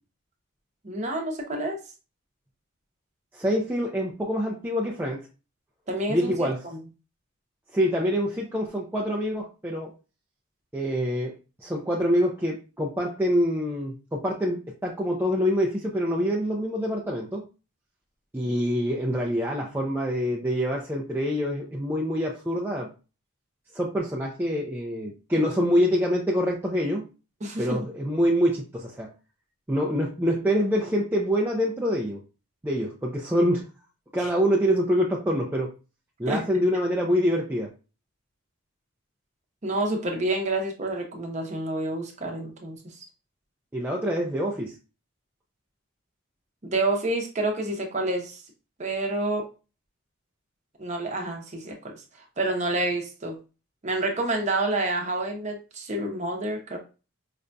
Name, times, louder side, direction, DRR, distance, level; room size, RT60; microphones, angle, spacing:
voice 1, 0.8-1.8 5.9-6.8 27.4-27.8 34.2-34.3 36.3-36.4 39.6-42.8 46.6-48.4 48.8-49.5 50.8-51.9 52.4-53.4 53.8-56.8, right 2 dB, 30° right, 2 dB, 0.7 m, -28 dB
voice 2, 3.3-5.2 6.1-6.6 7.7-9.9 10.7-11.3 11.6-17.4 18.3-22.9 23.7-27.0 27.6-29.1 29.7-32.2 32.6-33.7 34.1-35.7 36.2-37.7 43.7-44.8, equal, 10° right, -2 dB, 0.3 m, -25 dB
4.9 x 2.6 x 2.2 m, 0.32 s
head